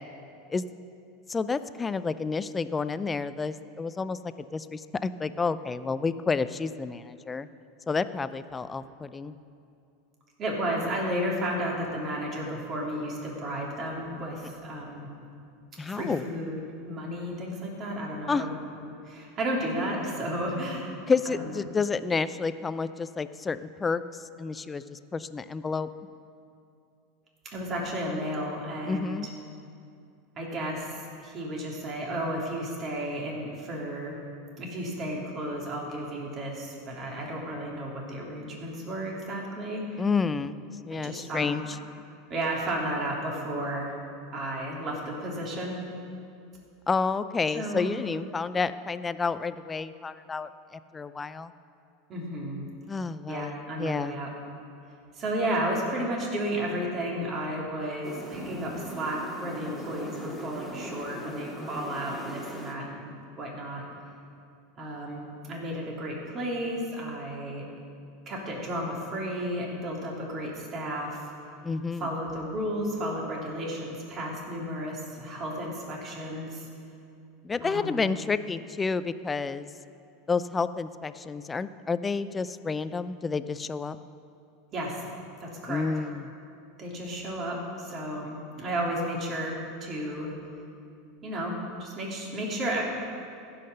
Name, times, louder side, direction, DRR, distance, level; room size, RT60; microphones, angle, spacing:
voice 1, 1.3-4.2 4.5-7.5 7.9-9.3 15.8-16.2 18.3-18.4 21.1-24.0 24.4-25.9 28.9-29.3 40.0-41.8 46.9-51.5 52.9-54.2 61.6-61.9 71.6-72.1 77.4-79.7 80.3-84.0 85.7-86.3, left 4 dB, 20° left, 13 dB, 0.5 m, -30 dB
voice 2, 10.4-15.1 15.9-21.0 21.2-21.4 27.5-29.3 30.4-34.2 34.6-40.0 40.9-41.5 42.3-44.0 44.3-45.8 47.5-47.9 52.1-52.6 53.3-54.3 55.1-63.8 64.8-67.6 68.3-71.2 72.0-76.7 77.6-78.1 84.7-85.0 85.4-85.8 86.8-90.3 91.2-92.8, right 1 dB, 40° right, -2 dB, 2.9 m, -33 dB
sound 1, 58.0-62.7, equal, 5° right, 1.9 m, -40 dB
15.0 x 5.8 x 6.6 m, 2.5 s
hypercardioid pair, 100°, 0 cm